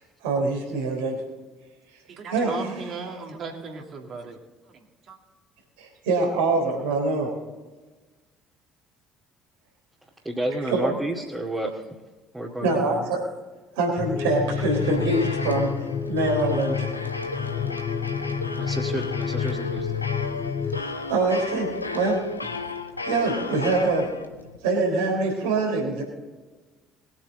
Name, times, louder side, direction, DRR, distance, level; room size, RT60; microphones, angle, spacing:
voice 1, 0.2-1.2 2.3-2.5 5.8-7.3 10.7-10.9 12.6-13.2 13.8-15.7 16.1-16.9 20.8-22.3 23.1-24.1 24.6-26.0, right 3 dB, 70° right, 0 dB, 3.8 m, -24 dB
voice 2, 2.1-4.4 4.7-5.2, right 4 dB, 45° right, 2 dB, 2.5 m, -36 dB
voice 3, 10.2-11.8 12.3-13.0 17.5-18.1 18.6-20.0, right 1 dB, 10° right, -4 dB, 2.3 m, -31 dB
sound 1, 14.0-20.8, left 7 dB, 45° left, 0.9 m, -29 dB
sound 2, 14.1-24.6, left 3 dB, 85° left, 0.7 m, -34 dB
21.0 x 8.9 x 4.0 m, 1.3 s
figure-of-eight pair, 55°, 0 cm